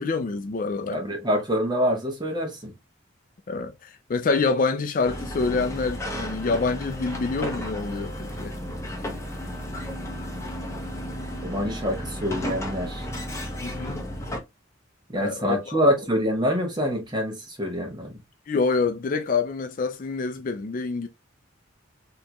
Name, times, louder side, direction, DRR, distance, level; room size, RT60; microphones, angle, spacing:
voice 1, 0.0-1.0 3.5-8.6 13.6-14.0 15.2-15.8 18.5-21.1, left 4 dB, 40° left, 0.4 m, -26 dB
voice 2, 0.9-2.7 11.4-13.1 15.1-18.2, equal, 20° right, 1.1 m, -26 dB
sound 1, 5.0-14.4, equal, 15° left, 1.0 m, -33 dB
4.4 x 2.9 x 2.3 m
head